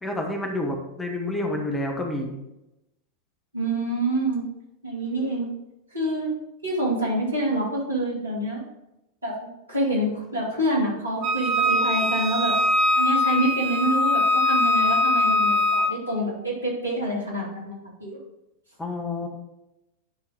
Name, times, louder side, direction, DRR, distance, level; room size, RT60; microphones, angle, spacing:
voice 1, 0.0-2.3 18.8-19.3, left 1 dB, 10° left, 2 dB, 1.2 m, -29 dB
voice 2, 3.5-4.4 4.8-5.5 5.9-6.3 6.6-8.6 9.2-9.3 9.7-12.5 12.9-18.2, right 1 dB, 80° right, -4 dB, 2.6 m, -26 dB
Wind instrument woodwind instrument, 11.2-15.9, left 2 dB, 35° right, 1.1 m, -22 dB
10.5 x 4.0 x 3.6 m, 0.91 s
figure-of-eight pair, 90°, 0 cm